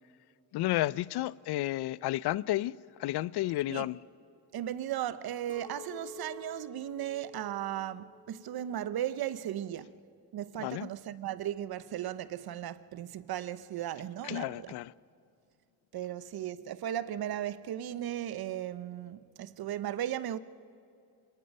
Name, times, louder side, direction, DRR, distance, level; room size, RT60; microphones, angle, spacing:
voice 1, 0.5-2.7 3.0-4.0 10.6-10.9 14.2-14.9, left 15 dB, 70° left, 0.5 m, -31 dB
voice 2, 4.5-9.9 10.3-14.7 15.9-20.4, right 11 dB, 60° right, 0.8 m, -36 dB
Chink clink, 5.5-9.8 10.2-10.8, left 3 dB, 20° left, 2.1 m, -51 dB
25.5 x 19.0 x 5.4 m
cardioid pair, 105°, 41 cm